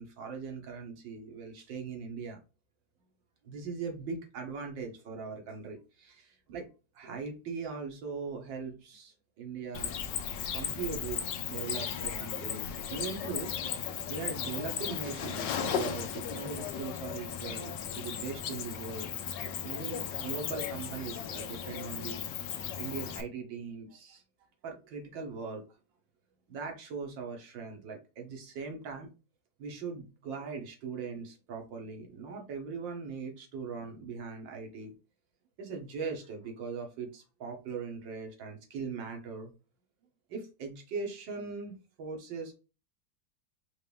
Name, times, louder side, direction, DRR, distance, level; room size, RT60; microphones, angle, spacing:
voice 1, 0.0-2.4 3.4-6.6 6.9-9.9 10.5-13.5 14.1-19.1 19.6-22.2 22.8-24.2 24.6-25.6 26.5-29.1 29.6-34.9 35.6-39.5 40.3-41.7 42.0-42.5, right 5 dB, 80° right, 3 dB, 1.8 m, -40 dB
Cricket, 9.7-23.2, left 8 dB, 75° left, 1.3 m, -36 dB
4.7 x 2.6 x 3.3 m, 0.31 s
omnidirectional pair, 2.0 m